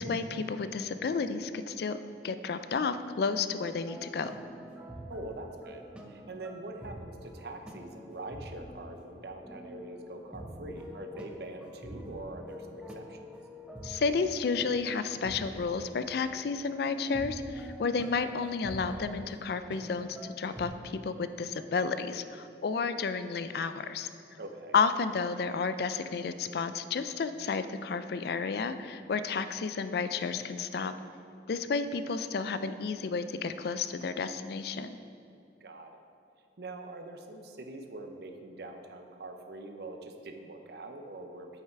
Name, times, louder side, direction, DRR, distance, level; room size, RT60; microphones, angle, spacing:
voice 1, 0.0-4.3 13.8-24.1 24.7-30.9 31.5-35.0, left 5 dB, 60° left, 11 dB, 0.4 m, -31 dB
sound 1, 3.9-20.7, equal, 5° right, 0.5 m, -46 dB
voice 2, 5.1-13.2 24.4-24.7 35.6-36.0 36.6-41.5, right 2 dB, 60° right, 5 dB, 0.7 m, -44 dB
8.1 x 5.6 x 4.6 m, 2.6 s
head